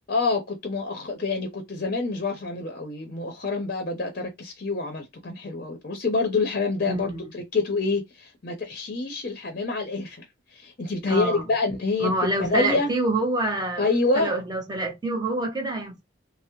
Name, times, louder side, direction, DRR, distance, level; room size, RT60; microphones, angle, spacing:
voice 1, 0.1-10.3 10.5-12.1 12.4-12.9 13.8-14.3, left 3 dB, 45° left, 0.6 m, -27 dB
voice 2, 6.8-7.2 11.1-11.5 12.0-13.9 14.1-16.0, right 2 dB, 20° right, 0.7 m, -26 dB
3.3 x 2.0 x 2.9 m
head